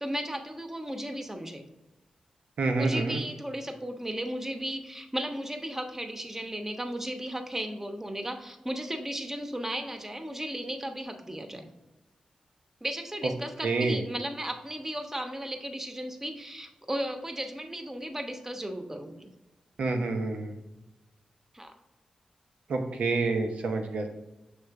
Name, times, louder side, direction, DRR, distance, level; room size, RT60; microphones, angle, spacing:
voice 1, 0.0-1.7 2.8-11.7 12.8-19.3 21.5-21.7, right 1 dB, 15° right, 5 dB, 1.0 m, -35 dB
voice 2, 2.6-3.2 13.6-14.0 19.8-20.5 22.7-24.1, right 3 dB, 80° right, 4 dB, 0.8 m, -28 dB
6.6 x 3.1 x 4.7 m, 1.0 s
cardioid pair, 50°, 2 cm